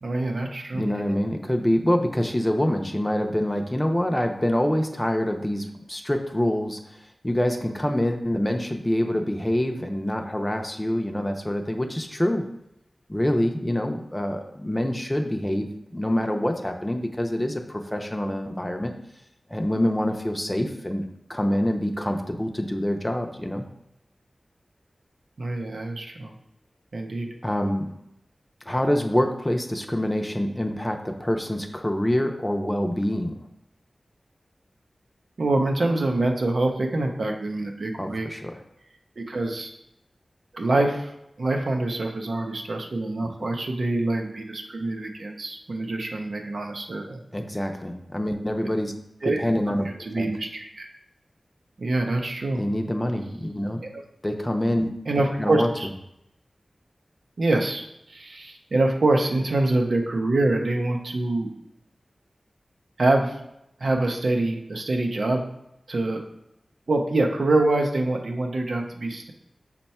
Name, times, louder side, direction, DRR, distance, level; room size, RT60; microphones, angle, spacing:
voice 1, 0.0-0.9 25.4-26.3 26.9-27.3 35.4-38.3 39.2-39.7 40.5-47.2 49.2-49.4 50.1-50.9 51.8-52.6 53.9-54.0 55.1-55.9 57.4-61.5 63.0-63.4 63.8-65.5 65.9-66.2 66.9-69.3, right 2 dB, 75° right, 2 dB, 0.6 m, -25 dB
voice 2, 0.7-12.5 13.1-18.9 19.5-23.7 27.4-27.9 28.7-33.4 38.0-38.6 43.2-43.3 47.3-48.9 49.2-49.9 50.2-50.3 52.5-53.8 54.2-54.9 55.4-55.7, left 1 dB, 15° left, 3 dB, 0.5 m, -26 dB
5.4 x 2.2 x 4.2 m, 0.82 s
cardioid pair, 45°, 0 cm